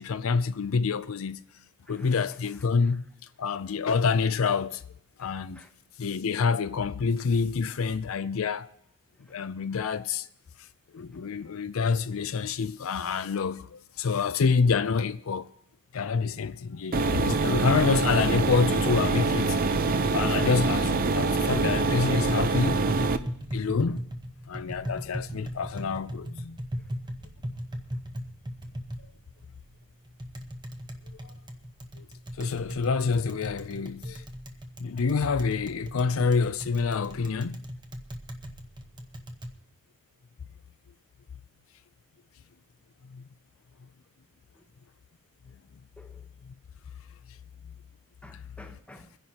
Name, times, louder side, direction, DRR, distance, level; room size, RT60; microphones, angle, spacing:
voice 1, 0.0-1.4 1.9-3.0 3.4-4.8 5.2-5.6 6.0-8.7 9.3-10.3 10.9-15.5 15.9-19.6 20.1-22.8 23.5-24.0 24.5-26.6 31.2-31.3 32.0-32.1 32.4-34.2 34.8-37.6 43.1-43.2 48.3-48.4, left 5 dB, 75° left, 0.5 m, -27 dB
voice 2, 1.9-3.0 5.2-5.3 5.5-5.7 9.3-9.4 44.5-44.6 46.0-46.3 48.2-49.1, left 1 dB, 5° left, 1.0 m, -52 dB
sound 1, 16.9-23.2, right 3 dB, 45° right, 0.6 m, -25 dB
Tap, 22.7-39.5, equal, 20° right, 1.0 m, -38 dB
24.0 x 10.5 x 2.9 m
head